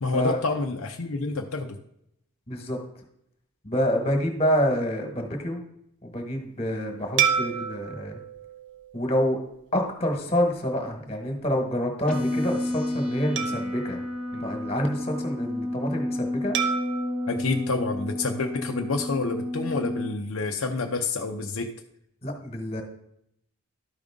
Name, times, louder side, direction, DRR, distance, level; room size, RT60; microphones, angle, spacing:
voice 1, 0.0-1.8 17.3-21.7, left 3 dB, 70° left, 3 dB, 0.7 m, -28 dB
voice 2, 2.5-2.8 3.6-5.6 6.0-8.2 8.9-9.4 9.7-14.0 14.3-16.6 22.2-22.8, equal, 25° left, 3 dB, 1.5 m, -27 dB
sound 1, 7.2-9.9 10.4-10.6 13.4-15.1 16.5-18.8, right 8 dB, 55° right, 0.7 m, -31 dB
sound 2, 12.1-20.1, left 1 dB, 5° left, 0.9 m, -31 dB
12.5 x 5.2 x 3.6 m, 0.76 s
head